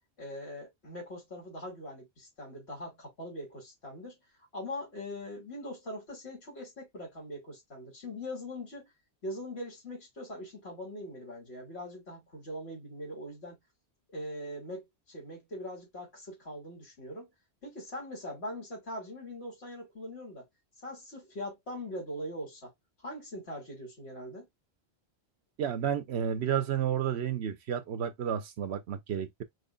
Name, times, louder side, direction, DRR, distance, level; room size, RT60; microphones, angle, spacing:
voice 1, 0.2-4.2 4.5-8.9 9.2-13.6 14.1-17.3 17.6-20.5 20.8-22.7 23.0-24.5, left 1 dB, 80° left, 3.1 m, -41 dB
voice 2, 25.6-29.4, right 9 dB, 90° right, 1.0 m, -31 dB
5.5 x 3.0 x 2.3 m
omnidirectional pair, 1.1 m